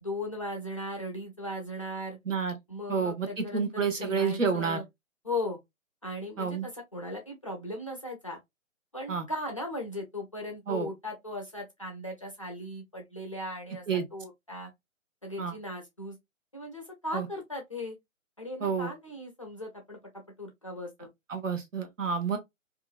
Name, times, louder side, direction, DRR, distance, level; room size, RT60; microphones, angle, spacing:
voice 1, 0.0-2.2 2.7-4.8 5.2-5.6 6.0-8.4 8.9-13.8 14.1-14.7 15.2-16.2 16.5-18.0 18.4-20.0 20.4-21.1, left 1 dB, 25° left, 0.4 m, -37 dB
voice 2, 2.2-2.6 2.9-4.8 6.4-6.7 9.1-9.2 10.7-10.9 13.9-14.0 15.4-15.5 17.1-17.3 18.6-18.9 21.3-22.4, right 5 dB, 70° right, 1.0 m, -29 dB
2.8 x 2.4 x 2.3 m
figure-of-eight pair, 140°, 40 cm